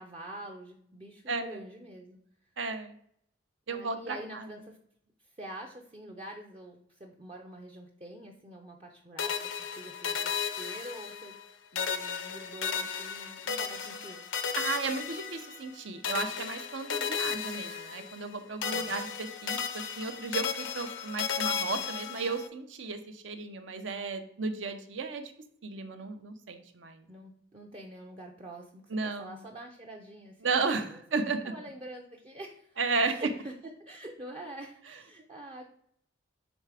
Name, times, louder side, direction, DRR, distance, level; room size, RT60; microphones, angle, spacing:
voice 1, 0.0-2.2 3.7-4.8 5.4-11.3 11.7-14.2 18.7-19.0 27.1-30.5 30.7-31.0 31.4-33.5 33.8-35.7, right 1 dB, 30° right, 0 dB, 0.5 m, -46 dB
voice 2, 1.3-1.6 2.6-2.9 3.7-4.5 14.6-25.3 25.6-27.0 28.9-29.4 30.4-31.5 32.8-33.2, right 4 dB, 75° right, 7 dB, 0.7 m, -34 dB
sound 1, 9.2-11.5 11.7-15.7 16.0-18.3 18.6-22.5, left 7 dB, 85° left, 0.7 m, -34 dB
6.2 x 3.3 x 4.8 m, 0.67 s
head